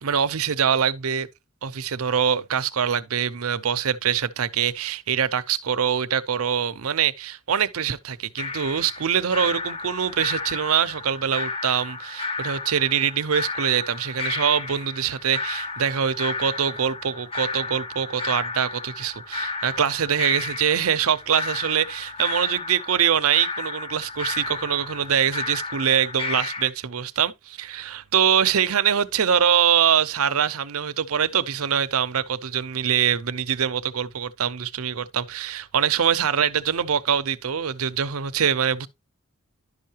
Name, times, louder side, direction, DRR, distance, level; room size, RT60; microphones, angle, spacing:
voice 1, 0.0-1.3 1.6-38.9, right 8 dB, 80° right, 0.6 m, -24 dB
sound 1, 8.4-26.7, left 4 dB, 25° left, 0.7 m, -32 dB
11.0 x 5.6 x 2.8 m
head